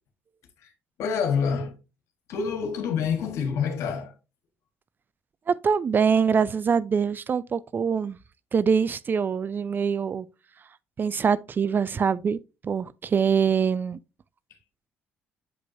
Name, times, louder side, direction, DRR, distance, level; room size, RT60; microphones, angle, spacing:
voice 1, 1.0-1.7 2.3-4.1, left 6 dB, 65° left, 1.4 m, -27 dB
voice 2, 5.5-8.2 8.5-10.3 11.0-12.4 12.6-14.0, right 6 dB, 40° right, 0.4 m, -24 dB
7.6 x 5.1 x 2.7 m
hypercardioid pair, 50°, 5 cm